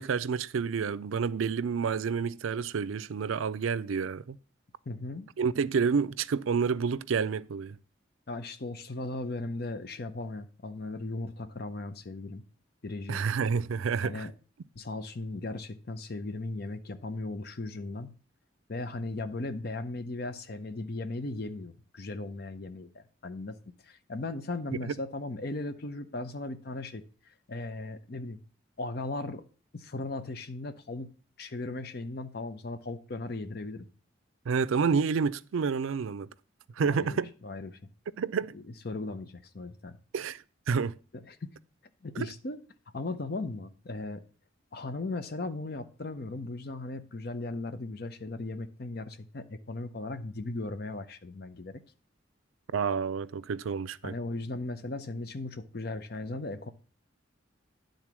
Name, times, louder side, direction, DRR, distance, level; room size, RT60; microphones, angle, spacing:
voice 1, 0.0-4.4 5.4-7.8 13.1-14.3 24.9-25.0 34.5-36.3 36.8-37.3 38.2-38.5 40.1-40.9 42.2-42.3 52.7-54.1, right 6 dB, 90° right, 0.4 m, -29 dB
voice 2, 4.9-5.3 8.3-12.4 12.8-13.2 14.0-14.3 14.7-18.1 18.7-23.6 23.8-27.0 27.5-28.4 28.8-29.4 29.7-31.1 31.4-33.9 36.8-37.8 38.8-40.0 41.3-41.5 42.0-42.6 42.9-44.2 44.7-51.8 54.0-56.7, left 2 dB, 50° left, 0.7 m, -37 dB
10.5 x 3.9 x 6.0 m
head